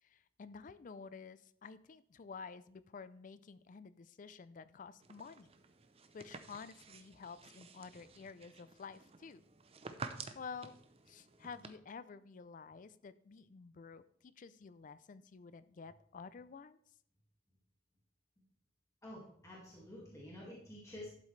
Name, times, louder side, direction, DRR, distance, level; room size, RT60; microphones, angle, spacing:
voice 1, 0.0-5.5 6.1-9.4 10.3-10.8 11.1-16.8, left 5 dB, 45° left, 15 dB, 0.4 m, -51 dB
sound 1, 5.0-11.7, right 4 dB, 35° right, 0.6 m, -51 dB
voice 2, 19.0-21.1, left 1 dB, 15° left, -5 dB, 1.9 m, -50 dB
11.5 x 7.3 x 3.2 m, 0.67 s
head